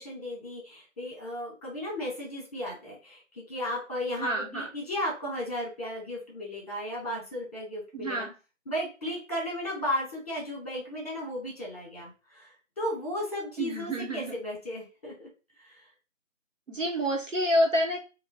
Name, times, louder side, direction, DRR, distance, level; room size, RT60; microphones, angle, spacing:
voice 1, 0.0-8.2 8.7-15.3 15.6-15.8, left 1 dB, 30° left, -3 dB, 1.5 m, -35 dB
voice 2, 4.2-4.7 7.9-8.3 13.6-14.4 16.7-18.0, equal, 70° right, 2 dB, 1.1 m, -28 dB
4.6 x 2.4 x 2.8 m, 0.32 s
figure-of-eight pair, 165°, 39 cm